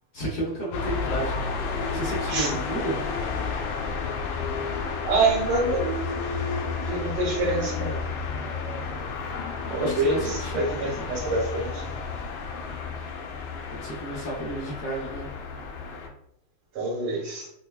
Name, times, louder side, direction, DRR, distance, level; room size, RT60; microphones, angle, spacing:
voice 1, 0.1-1.3 1.9-3.6 9.8-10.6 13.7-15.3, right 2 dB, 60° left, -5 dB, 1.1 m, -32 dB
sound 1, 0.7-16.1, left 5 dB, 85° left, 1.5 m, -31 dB
voice 2, 5.1-8.0 9.7-12.0 16.7-17.5, right 2 dB, 80° right, -3 dB, 2.0 m, -27 dB
5.5 x 2.1 x 2.2 m, 0.76 s
omnidirectional pair, 2.4 m